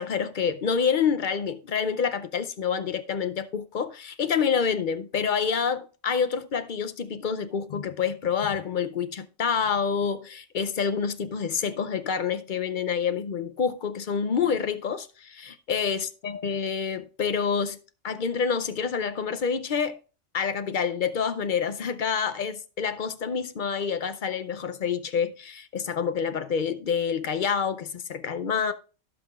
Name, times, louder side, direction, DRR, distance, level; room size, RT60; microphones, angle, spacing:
voice 1, 0.0-17.8 18.0-20.0 20.3-28.7, left 6 dB, 50° left, 0.6 m, -27 dB
17.0 x 5.7 x 2.4 m
omnidirectional pair, 1.3 m